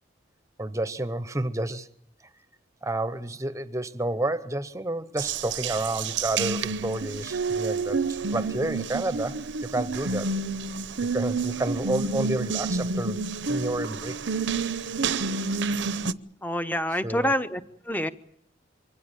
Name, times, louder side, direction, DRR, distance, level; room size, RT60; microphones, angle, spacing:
voice 1, 0.6-1.9 2.8-10.3 11.0-13.2 13.5-14.2 16.9-17.3, right 1 dB, 15° right, 0.9 m, -30 dB
Water tap faucet, 5.2-16.1, right 4 dB, 75° right, 0.8 m, -29 dB
voice 2, 16.4-17.6 17.9-18.1, equal, 10° left, 0.9 m, -26 dB
24.5 x 16.5 x 9.0 m
head